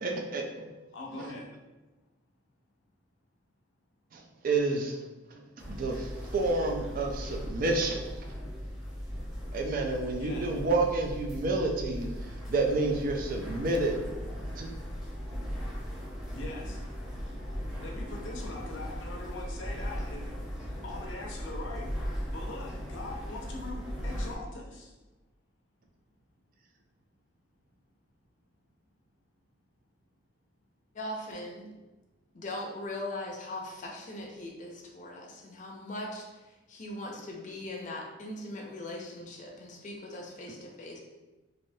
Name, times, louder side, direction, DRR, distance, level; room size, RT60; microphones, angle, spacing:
voice 1, 0.0-1.3 4.1-8.3 9.5-14.2 14.5-14.7, right 2 dB, 45° right, 2 dB, 0.4 m, -30 dB
voice 2, 0.9-1.5 10.2-10.5 16.3-16.8 17.8-20.3 20.8-21.9 22.3-24.9, left 2 dB, 90° left, 0 dB, 0.6 m, -42 dB
sound 1, 5.6-24.3, equal, ahead, 0.8 m, -38 dB
voice 3, 30.9-31.7 32.3-41.0, left 1 dB, 40° left, -1 dB, 0.5 m, -40 dB
3.2 x 2.6 x 2.7 m, 1.1 s
head